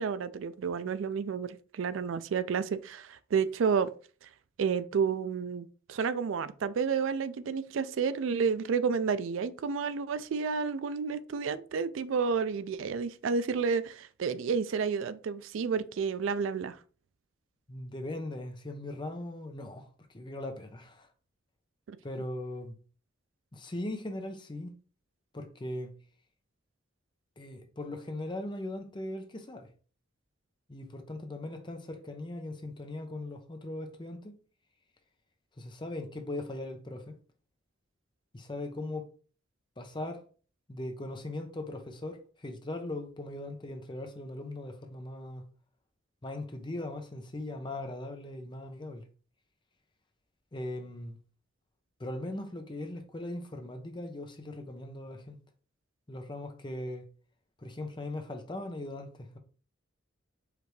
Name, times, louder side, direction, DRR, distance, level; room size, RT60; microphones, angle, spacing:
voice 1, 0.0-3.9 4.2-4.3 4.6-16.8 21.9-22.0, right 6 dB, 75° right, 0.4 m, -30 dB
voice 2, 17.7-19.9 20.1-21.1 22.0-22.8 23.5-24.7 25.3-25.9 27.4-29.7 30.7-34.4 35.6-37.2 38.3-39.1 39.8-40.2 40.7-45.4 46.2-49.0 50.5-51.2 52.0-55.4 56.1-57.1 57.6-59.4, left 1 dB, 25° left, 0.7 m, -39 dB
4.9 x 3.3 x 3.2 m
head